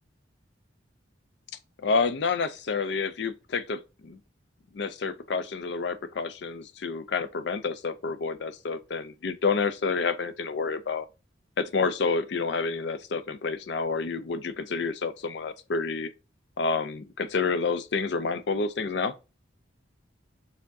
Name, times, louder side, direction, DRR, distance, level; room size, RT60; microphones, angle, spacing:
voice 1, 1.8-4.2 4.7-11.1 11.6-16.1 16.6-19.1, left 4 dB, 65° left, 0.5 m, -29 dB
4.5 x 3.5 x 2.6 m
head